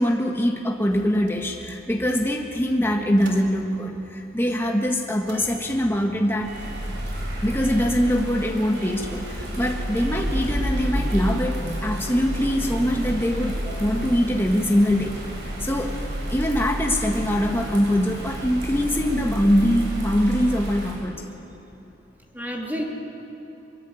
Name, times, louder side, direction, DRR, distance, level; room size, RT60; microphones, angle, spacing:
voice 1, 0.0-6.7 7.4-15.2 15.6-15.9 16.3-21.4, equal, 15° left, 1 dB, 1.4 m, -23 dB
Motor vehicle (road) / Engine starting / Idling, 0.9-4.1 4.4-19.4, equal, 90° right, 3.7 m, -35 dB
Bird vocalization bird call bird song / Rain, 6.3-20.9, equal, 65° right, 7.3 m, -32 dB
voice 2, 22.3-22.8, equal, 10° right, -1 dB, 2.8 m, -32 dB
23.0 x 22.0 x 8.3 m, 2.9 s
head